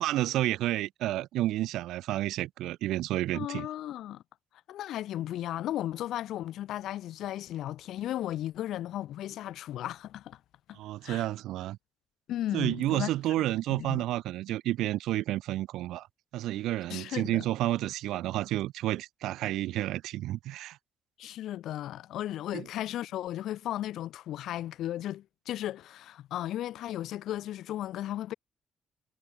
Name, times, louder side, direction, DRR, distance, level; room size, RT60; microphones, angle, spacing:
voice 1, 0.0-3.7 10.7-11.8 12.5-16.1 16.3-20.8 22.5-22.7, right 15 dB, 90° right, 0.5 m, -30 dB
voice 2, 3.3-4.2 4.7-10.4 10.7-11.3 12.3-13.1 13.7-14.0 16.9-17.4 21.2-28.3, left 13 dB, 80° left, 2.4 m, -35 dB
cardioid pair, 90°, 0 cm